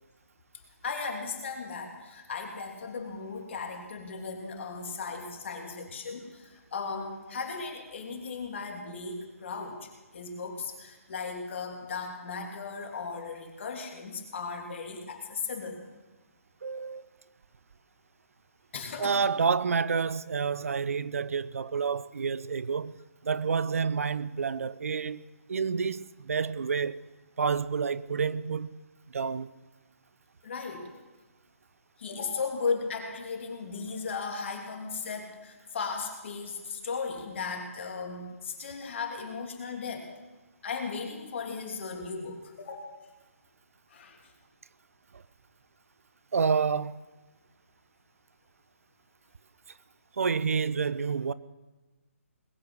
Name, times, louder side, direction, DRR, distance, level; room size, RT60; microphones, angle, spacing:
voice 1, 0.8-15.8 18.7-19.4 30.4-30.9 32.0-40.1 40.6-42.8 43.9-44.2, left 5 dB, 55° left, 3.0 m, -36 dB
voice 2, 16.6-17.1 19.0-23.0 23.2-25.2 25.5-27.0 27.4-28.8 29.1-29.5 45.1-45.2 46.3-47.0 50.1-51.3, right 5 dB, 70° right, 0.6 m, -29 dB
20.5 x 8.6 x 6.4 m
hypercardioid pair, 145°, 8 cm